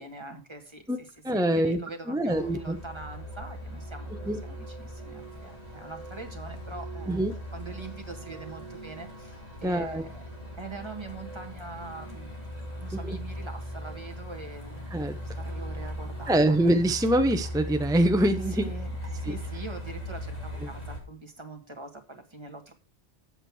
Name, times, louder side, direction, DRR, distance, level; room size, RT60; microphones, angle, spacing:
voice 1, 0.0-7.2 7.5-10.2 10.6-12.3 12.8-14.9 15.4-16.5 18.5-22.7, right 3 dB, 25° right, 4 dB, 1.6 m, -43 dB
voice 2, 1.2-1.8 2.1-2.8 4.3-4.4 7.1-7.3 9.6-10.0 13.0-13.2 14.9-15.2 16.3-18.7 19.3-19.4 20.6-20.7, right 1 dB, 5° right, 8 dB, 0.4 m, -24 dB
Truck, 2.3-21.0, equal, 35° left, 2.6 m, -39 dB
8.0 x 7.8 x 4.7 m, 0.33 s
omnidirectional pair, 1.1 m